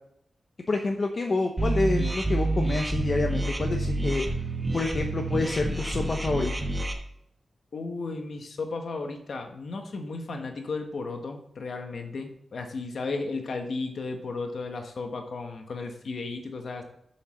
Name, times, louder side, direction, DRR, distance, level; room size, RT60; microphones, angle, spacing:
voice 1, 0.7-4.3 4.7-6.5, left 3 dB, 40° left, 3 dB, 0.9 m, -28 dB
sound 1, 1.6-6.9, right 2 dB, 15° right, 1.2 m, -28 dB
voice 2, 7.7-16.8, left 3 dB, 65° left, 4 dB, 1.2 m, -34 dB
7.5 x 6.4 x 6.4 m, 0.75 s
wide cardioid pair, 170°, 0 cm